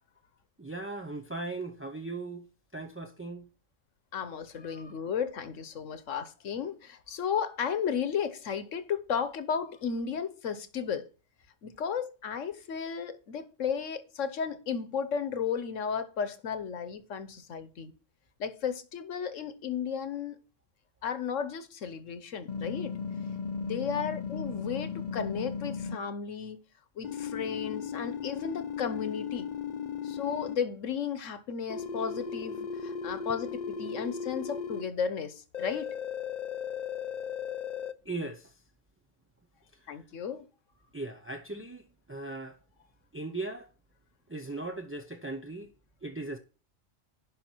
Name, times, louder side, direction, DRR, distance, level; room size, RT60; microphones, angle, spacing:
voice 1, 0.6-2.5 2.7-3.5 38.1-38.5 40.9-41.8 42.1-42.6 43.1-43.7 44.3-45.7 46.0-46.4, right 2 dB, 15° right, 0.4 m, -38 dB
voice 2, 4.1-11.1 11.6-17.9 18.4-20.4 21.0-22.9 23.6-26.6 27.0-29.5 30.0-35.9 39.9-40.4, left 7 dB, 75° left, 1.3 m, -34 dB
sound 1, 22.5-26.0 27.0-30.6 31.7-34.8 35.5-37.9, left 6 dB, 45° left, 0.6 m, -36 dB
10.5 x 5.3 x 4.4 m
omnidirectional pair, 1.3 m